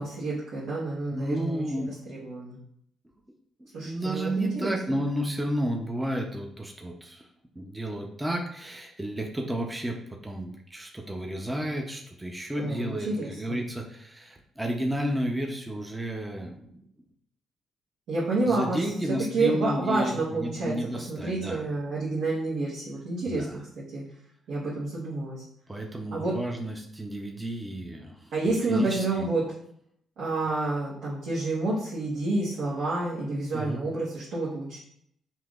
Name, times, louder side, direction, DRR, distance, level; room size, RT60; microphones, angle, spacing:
voice 1, 0.0-2.6 3.7-5.0 12.6-13.6 18.1-18.8 19.3-20.7 21.1-23.5 23.7-24.0 24.5-25.4 26.1-26.3 28.3-29.4 30.2-34.8, right 2 dB, 80° right, -9 dB, 1.3 m, -29 dB
voice 2, 1.1-1.9 3.6-7.3 7.5-16.8 18.5-21.6 23.3-23.6 25.7-28.3 28.7-29.3 33.5-33.8, right 1 dB, 10° right, 1 dB, 0.6 m, -32 dB
5.7 x 2.7 x 2.4 m, 0.68 s
cardioid pair, 90°, 0 cm